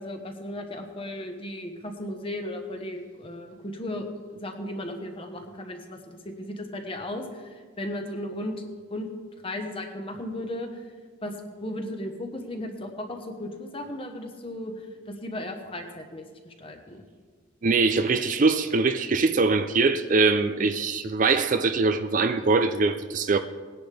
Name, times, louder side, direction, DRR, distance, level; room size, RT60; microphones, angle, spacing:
voice 1, 0.0-9.1 9.4-10.8 11.2-17.1, left 1 dB, 25° left, 1.2 m, -36 dB
voice 2, 17.6-23.4, right 4 dB, 40° right, 0.4 m, -22 dB
19.5 x 10.0 x 3.4 m
head